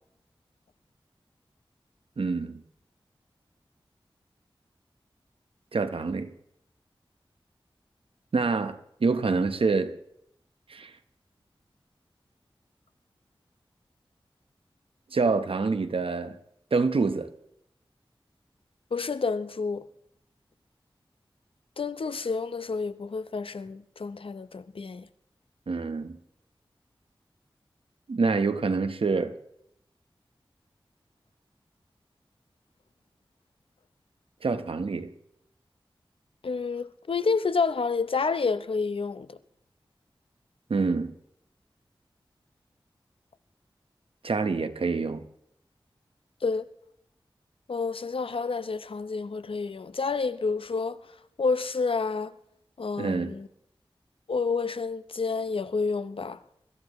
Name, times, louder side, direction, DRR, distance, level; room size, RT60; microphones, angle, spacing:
voice 1, 2.2-2.6 5.7-6.3 8.3-9.9 10.7-10.9 15.1-16.4 16.7-17.3 25.7-26.2 28.1-29.3 34.4-35.1 40.7-41.1 44.2-45.2 53.0-53.3, right 4 dB, 85° right, 1.1 m, -26 dB
voice 2, 18.9-19.9 21.8-25.1 36.4-39.4 46.4-46.6 47.7-51.0 51.4-52.3 52.8-53.5 54.3-56.4, left 4 dB, 80° left, 0.8 m, -29 dB
24.5 x 14.5 x 3.1 m
wide cardioid pair, 45°, 9 cm